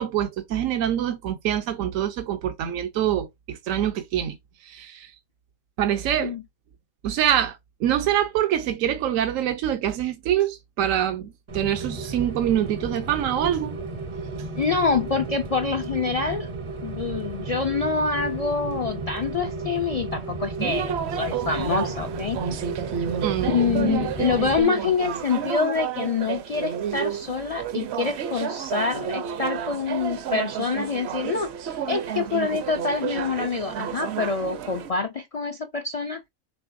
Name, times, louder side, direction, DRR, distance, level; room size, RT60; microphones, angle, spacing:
voice 1, 0.0-4.4 4.6-5.1 5.8-6.3 7.0-13.8 23.2-24.0, right 10 dB, 85° right, 1.0 m, -25 dB
Rain, 11.5-24.6, right 3 dB, 40° right, 0.4 m, -33 dB
voice 2, 14.6-16.5 16.8-22.4 23.5-36.2, left 5 dB, 75° left, 0.3 m, -26 dB
sound 1, 20.6-34.9, right 8 dB, 65° right, 0.8 m, -31 dB
5.9 x 3.4 x 2.5 m
omnidirectional pair, 1.4 m